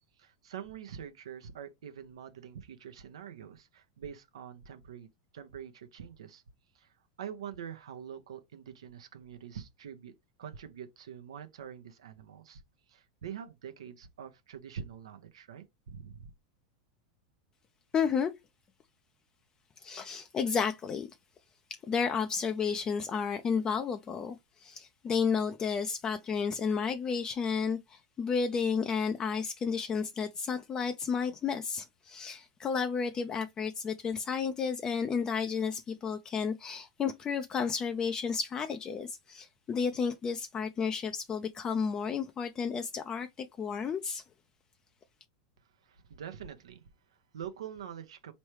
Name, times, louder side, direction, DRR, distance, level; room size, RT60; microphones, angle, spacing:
voice 1, 0.2-5.1 5.3-6.4 6.7-10.1 10.4-12.6 12.9-16.3 45.8-48.3, right 8 dB, 90° right, 0.7 m, -45 dB
voice 2, 17.9-18.3 19.8-21.1 21.9-44.2, left 6 dB, 25° left, 0.4 m, -32 dB
4.3 x 3.1 x 3.1 m
supercardioid pair, 125°, 3 cm